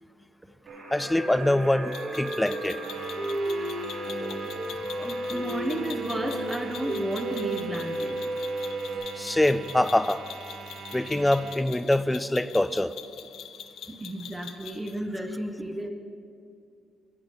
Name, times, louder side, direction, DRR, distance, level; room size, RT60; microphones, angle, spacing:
sound 1, 0.7-9.0, right 1 dB, 60° right, 2.4 m, -33 dB
voice 1, 0.9-2.8 9.2-10.2 10.9-12.9, left 1 dB, 10° left, 14 dB, 0.3 m, -24 dB
sound 2, 1.9-15.0, left 8 dB, 75° left, 0.6 m, -44 dB
sound 3, 2.7-11.6, right 5 dB, 75° right, 0.7 m, -43 dB
voice 2, 4.1-8.2 13.9-15.9, right 1 dB, 15° right, 3 dB, 0.7 m, -33 dB
11.0 x 7.1 x 5.2 m, 2.5 s
cardioid pair, 90°, 0 cm